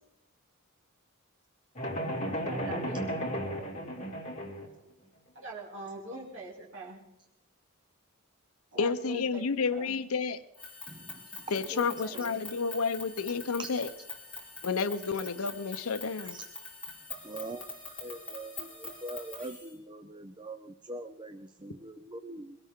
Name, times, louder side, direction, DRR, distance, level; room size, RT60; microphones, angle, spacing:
sound 1, 1.8-4.7, equal, 30° left, 2.8 m, -34 dB
voice 1, 2.5-3.3 5.3-7.0 8.7-10.0 11.6-12.4, right 1 dB, 60° right, -5 dB, 2.9 m, -43 dB
voice 2, 8.8-10.4 11.5-13.9 14.6-16.4, left 5 dB, 75° left, 13 dB, 0.7 m, -30 dB
sound 2, 10.5-19.7, left 4 dB, 5° left, 3.3 m, -44 dB
voice 3, 17.2-17.7 18.0-22.6, right 2 dB, 20° right, 9 dB, 0.5 m, -42 dB
22.5 x 17.0 x 3.7 m, 0.89 s
head